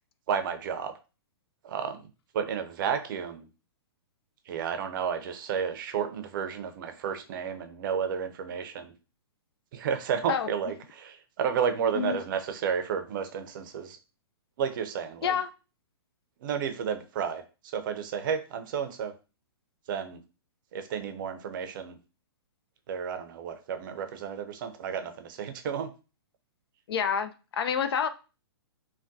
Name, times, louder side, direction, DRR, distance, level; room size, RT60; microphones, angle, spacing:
voice 1, 0.3-0.9 1.6-2.0 2.3-3.5 4.5-8.9 9.7-14.0 14.6-15.3 16.4-17.4 17.7-19.1 19.9-20.2 20.7-22.0 22.9-25.9, right 7 dB, 50° right, 0.5 m, -32 dB
voice 2, 26.9-28.1, left 7 dB, 65° left, 0.4 m, -28 dB
3.4 x 2.2 x 2.6 m
hypercardioid pair, 135°, 14 cm